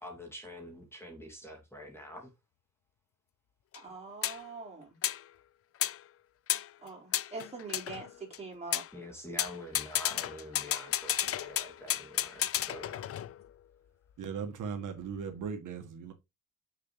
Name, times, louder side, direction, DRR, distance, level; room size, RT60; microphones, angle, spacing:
voice 1, 0.0-2.3 8.9-13.1, equal, 10° left, 2.2 m, -46 dB
sound 1, 3.7-3.8 4.2-4.4 5.0-5.2 5.8-6.0 6.5-6.7 7.1-8.4 8.7-8.9 9.4-13.5, left 11 dB, 50° left, 0.4 m, -33 dB
voice 2, 3.7-5.0 6.8-8.8, right 3 dB, 20° right, 4.4 m, -43 dB
voice 3, 14.2-16.1, right 6 dB, 75° right, 1.6 m, -38 dB
6.9 x 6.5 x 3.1 m
cardioid pair, 120°, 31 cm